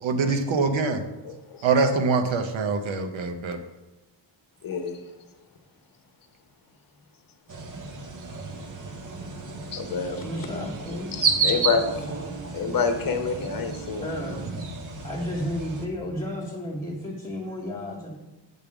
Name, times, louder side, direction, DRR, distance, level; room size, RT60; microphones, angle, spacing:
voice 1, 0.0-1.0 1.6-3.6, right 4 dB, 80° right, 7 dB, 0.8 m, -24 dB
voice 2, 1.2-1.7 4.6-5.0 9.7-10.2 11.1-12.2 12.5-14.1, left 5 dB, 45° left, 6 dB, 0.9 m, -28 dB
sound 1, 7.5-15.9, right 4 dB, 40° right, 0.8 m, -31 dB
voice 3, 9.9-11.2 14.0-14.4 15.0-18.1, left 1 dB, 10° left, -7 dB, 1.2 m, -33 dB
8.5 x 3.5 x 5.9 m, 1.1 s
wide cardioid pair, 180°, 46 cm